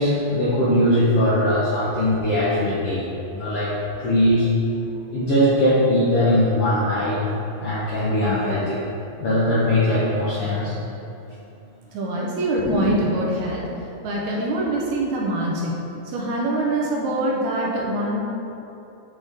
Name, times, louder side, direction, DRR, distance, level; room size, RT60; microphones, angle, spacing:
voice 1, 0.0-3.7 4.0-4.5 5.1-7.2 7.6-8.8 9.2-10.8 12.6-12.9, left 1 dB, 70° left, -9 dB, 1.4 m, -20 dB
voice 2, 11.9-13.6 14.0-15.7 16.1-18.2, right 1 dB, 75° right, -3 dB, 1.9 m, -24 dB
8.3 x 4.0 x 3.6 m, 2.9 s
omnidirectional pair, 3.7 m